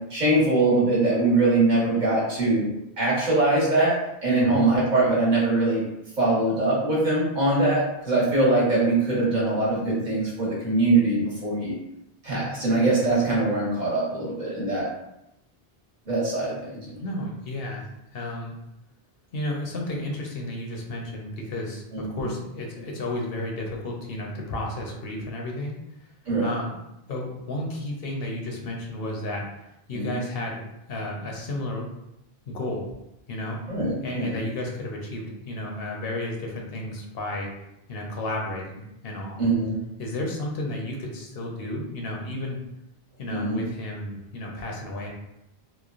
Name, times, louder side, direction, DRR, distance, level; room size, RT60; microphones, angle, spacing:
voice 1, 0.1-2.7 3.0-3.9 4.2-5.8 6.2-11.8 12.2-14.9 16.1-17.0 21.9-22.2 26.3-26.5 29.9-30.2 33.7-34.4 39.4-39.8 43.3-43.6, right 2 dB, 50° right, -6 dB, 1.0 m, -22 dB
voice 2, 17.0-18.5 19.3-25.7 26.4-26.8 27.1-29.5 29.9-30.6 30.9-31.9 32.5-32.9 33.3-33.6 34.0-37.5 37.9-39.4 40.0-42.6 43.2-45.1, left 1 dB, 70° left, 0 dB, 0.8 m, -32 dB
3.0 x 2.1 x 2.4 m, 0.86 s
omnidirectional pair, 1.0 m